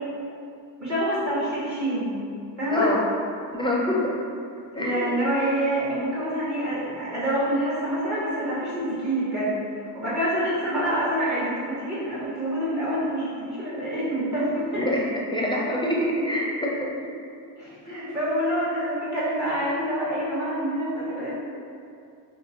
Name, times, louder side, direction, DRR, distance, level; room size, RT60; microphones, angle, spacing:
voice 1, 0.8-2.1 2.6-2.9 4.8-9.5 9.9-14.8 17.6-21.3, right 1 dB, 40° right, -9 dB, 1.0 m, -26 dB
voice 2, 2.7-3.0 3.5-4.1 4.7-5.2 14.8-17.1, left 1 dB, 10° left, -3 dB, 0.5 m, -25 dB
2.9 x 2.3 x 2.7 m, 2.4 s
cardioid pair, 45°, 45 cm